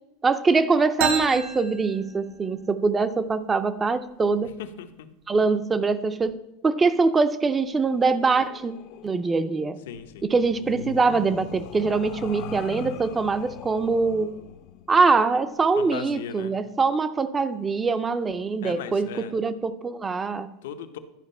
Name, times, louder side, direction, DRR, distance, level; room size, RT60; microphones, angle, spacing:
voice 1, 0.2-4.5 5.3-6.4 6.6-8.7 9.0-9.8 10.2-14.3 14.9-20.5, right 4 dB, 15° right, 13 dB, 0.4 m, -23 dB
sound 1, 1.0-2.7, right 6 dB, 65° right, 1.3 m, -30 dB
voice 2, 4.6-5.1 9.9-10.2 15.8-16.6 18.6-19.3 20.6-21.0, left 9 dB, 80° left, 9 dB, 0.8 m, -37 dB
sound 2, 7.4-16.4, left 9 dB, 45° left, 0.5 m, -42 dB
10.5 x 5.2 x 5.4 m, 0.91 s
supercardioid pair, 170°, 0 cm